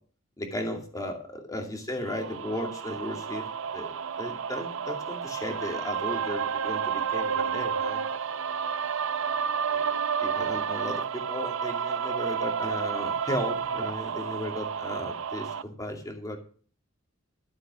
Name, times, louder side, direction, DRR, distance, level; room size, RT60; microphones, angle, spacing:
voice 1, 0.4-3.5 3.7-8.0 9.7-9.9 10.2-16.4, left 1 dB, 20° left, 2 dB, 2.5 m, -35 dB
sound 1, 2.1-15.6, right 7 dB, 75° right, 0.6 m, -31 dB
12.5 x 7.5 x 6.2 m, 0.43 s
head